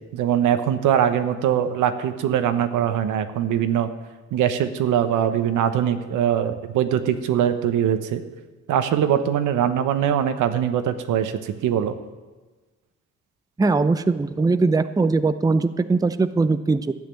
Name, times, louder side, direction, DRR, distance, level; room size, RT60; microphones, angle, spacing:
voice 1, 0.1-3.9 4.3-8.2 8.7-12.0, right 9 dB, 85° right, 9 dB, 1.0 m, -22 dB
voice 2, 13.6-16.9, right 3 dB, 10° right, 11 dB, 0.5 m, -20 dB
12.0 x 6.6 x 9.3 m, 1.3 s
cardioid pair, 90°, 30 cm